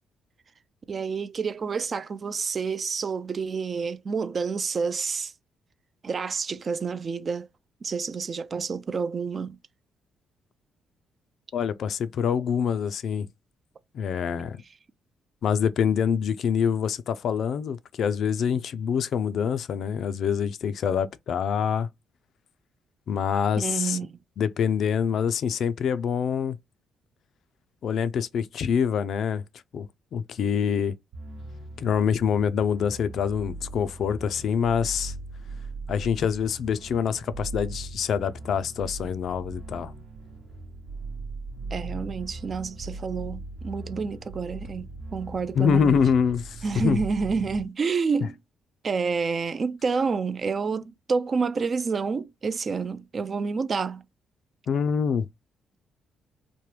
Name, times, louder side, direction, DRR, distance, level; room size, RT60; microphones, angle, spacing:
voice 1, 0.9-5.3 6.0-7.5 7.8-9.5 23.6-24.2 41.7-46.0 46.6-48.4 48.8-54.0, right 5 dB, 40° right, 0.3 m, -29 dB
voice 2, 11.5-13.3 13.9-14.6 15.4-21.9 23.1-24.0 24.4-26.6 27.8-29.4 29.7-29.9 30.1-31.0 31.8-35.1 35.9-39.9 45.6-47.0 54.7-55.3, left 7 dB, 65° left, 0.3 m, -25 dB
sound 1, 31.1-47.6, right 2 dB, 75° right, 0.9 m, -39 dB
3.0 x 2.1 x 3.2 m
cardioid pair, 90°, 0 cm